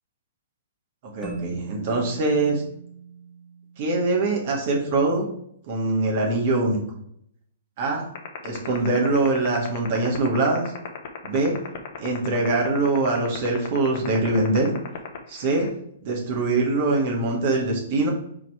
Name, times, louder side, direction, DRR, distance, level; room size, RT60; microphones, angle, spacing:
voice 1, 1.1-2.6 3.8-5.3 5.7-6.8 7.8-8.1 8.4-10.7 11.2-11.6 12.0-14.7 15.3-15.7 16.0-18.1, right 2 dB, 45° right, -1 dB, 1.8 m, -23 dB
Keyboard (musical), 1.2-4.5, right 5 dB, 10° right, 1.9 m, -40 dB
sound 1, 8.2-15.7, left 13 dB, 50° left, 1.1 m, -34 dB
4.7 x 4.5 x 4.7 m, 0.70 s
figure-of-eight pair, 115°, 0 cm